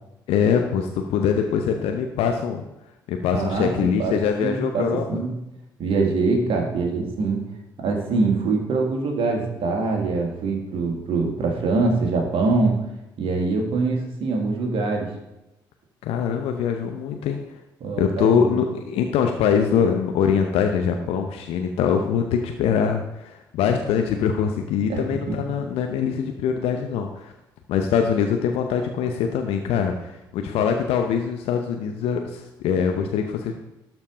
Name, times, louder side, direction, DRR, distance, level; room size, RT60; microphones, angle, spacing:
voice 1, 0.3-2.6 3.1-5.0 16.0-17.4 18.0-27.3 27.7-33.5, left 7 dB, 65° left, 4 dB, 0.7 m, -23 dB
voice 2, 3.3-3.7 4.0-5.4 5.8-7.4 7.8-12.8 13.2-15.1 17.8-18.6 24.9-25.0 25.3-25.4, right 3 dB, 55° right, 2 dB, 1.9 m, -24 dB
12.5 x 4.5 x 5.1 m, 0.94 s
figure-of-eight pair, 45°, 11 cm